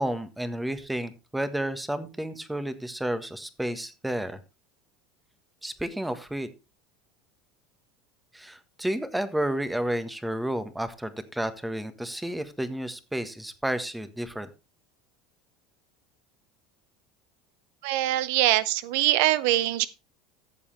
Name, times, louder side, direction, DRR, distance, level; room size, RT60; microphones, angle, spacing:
voice 1, 0.0-4.4 5.6-6.5 8.3-14.5, right 1 dB, 5° right, 1.5 m, -31 dB
voice 2, 17.8-19.9, right 15 dB, 70° right, 0.5 m, -23 dB
14.0 x 7.2 x 3.3 m
hypercardioid pair, 85°, 0 cm